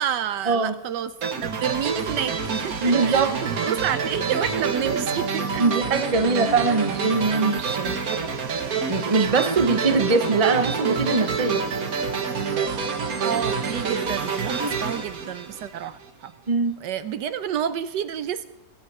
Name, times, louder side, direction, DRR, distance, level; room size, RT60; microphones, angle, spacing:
voice 1, 0.0-5.6 13.2-16.3 16.8-18.4, right 9 dB, 75° right, 13 dB, 1.3 m, -29 dB
sound 1, 1.2-16.0, right 5 dB, 55° right, 1.7 m, -27 dB
voice 2, 2.8-3.4 5.6-8.0 8.9-11.7 16.5-16.8, right 4 dB, 25° right, 8 dB, 0.8 m, -22 dB
20.5 x 10.5 x 4.8 m, 0.96 s
omnidirectional pair, 2.0 m